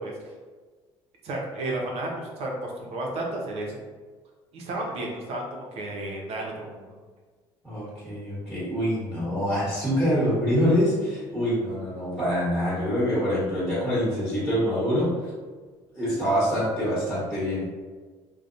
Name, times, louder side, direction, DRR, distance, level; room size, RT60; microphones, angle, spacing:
voice 1, 1.2-3.7 4.5-6.9, right 2 dB, 65° right, -1 dB, 0.6 m, -32 dB
voice 2, 7.6-15.3 15.9-17.7, equal, ahead, -12 dB, 1.3 m, -25 dB
2.6 x 2.1 x 2.5 m, 1.4 s
cardioid pair, 95°, 11 cm